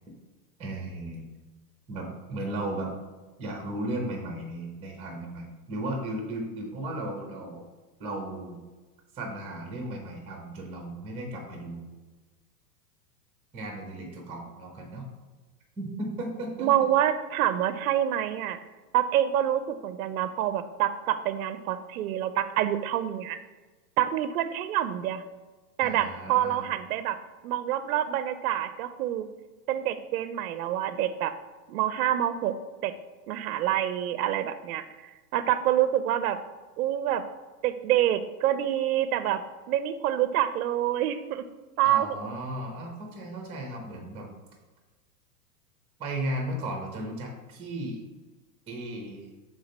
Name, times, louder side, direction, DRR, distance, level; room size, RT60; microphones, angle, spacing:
voice 1, 0.6-1.3 1.9-2.9 3.4-7.6 8.0-8.6 9.1-11.9 13.5-15.1 15.8-16.7 25.8-26.7 41.8-44.3 46.0-48.0 48.7-49.3, right 1 dB, 10° right, 1 dB, 0.9 m, -35 dB
voice 2, 16.6-18.6 18.9-23.4 24.0-25.2 25.8-27.2 27.4-29.3 29.7-31.3 31.7-32.5 32.8-32.9 33.3-36.4 36.8-37.2 37.6-39.4 39.7-41.4 41.8-42.4, right 11 dB, 60° right, 12 dB, 0.6 m, -27 dB
4.9 x 3.8 x 5.3 m, 1.2 s
hypercardioid pair, 150°, 49 cm